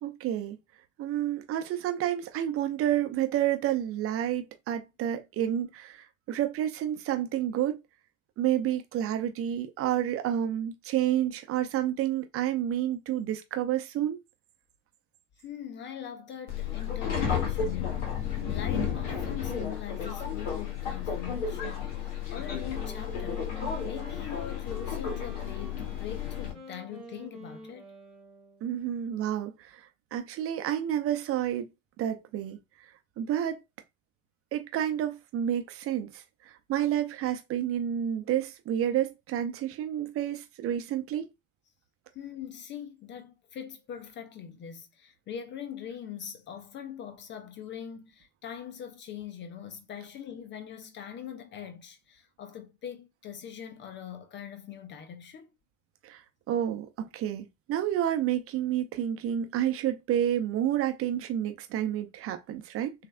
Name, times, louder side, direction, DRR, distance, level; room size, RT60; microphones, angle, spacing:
voice 1, 0.0-0.6 1.0-7.8 8.4-14.2 28.6-31.7 32.0-32.6 33.2-33.6 34.5-41.3 56.0-56.2 56.5-62.9, right 11 dB, 35° right, 0.9 m, -30 dB
voice 2, 15.4-23.4 23.8-27.9 42.1-55.5, left 9 dB, 30° left, 0.6 m, -42 dB
Subway metro underground, 16.5-26.5, left 7 dB, 60° left, 1.8 m, -32 dB
Wind instrument woodwind instrument, 22.3-28.7, equal, ahead, 1.6 m, -48 dB
6.3 x 3.2 x 2.2 m
figure-of-eight pair, 75°, 40 cm